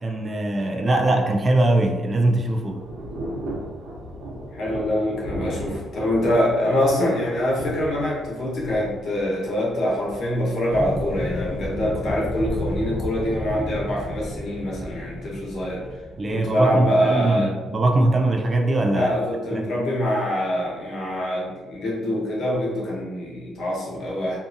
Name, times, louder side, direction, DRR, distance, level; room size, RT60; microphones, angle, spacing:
voice 1, 0.0-2.8 16.2-19.1 19.5-19.7, right 2 dB, 30° right, 2 dB, 0.4 m, -21 dB
Thunder / Rain, 1.7-13.6, equal, 85° right, 0.8 m, -37 dB
voice 2, 4.5-16.0 16.3-17.5 18.9-24.4, equal, 65° left, -4 dB, 0.9 m, -24 dB
sound 1, 10.7-16.9, left 1 dB, 5° left, 1.1 m, -31 dB
2.7 x 2.4 x 2.5 m, 1.2 s
cardioid pair, 90°, 0 cm